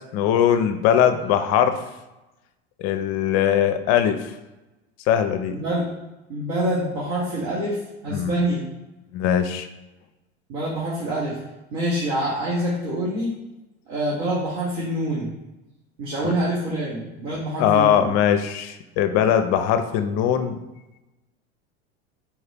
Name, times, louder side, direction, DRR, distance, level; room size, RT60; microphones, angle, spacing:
voice 1, 0.1-1.8 2.8-4.3 5.1-5.5 8.1-8.4 9.1-9.7 16.2-16.3 17.3-20.6, left 9 dB, 50° left, 9 dB, 0.5 m, -21 dB
voice 2, 5.5-5.9 6.3-8.6 10.5-11.4 11.7-13.4 13.9-15.3 16.0-18.1, right 1 dB, 60° right, -7 dB, 1.4 m, -26 dB
4.5 x 2.7 x 3.4 m, 1.0 s
hypercardioid pair, 100°, 32 cm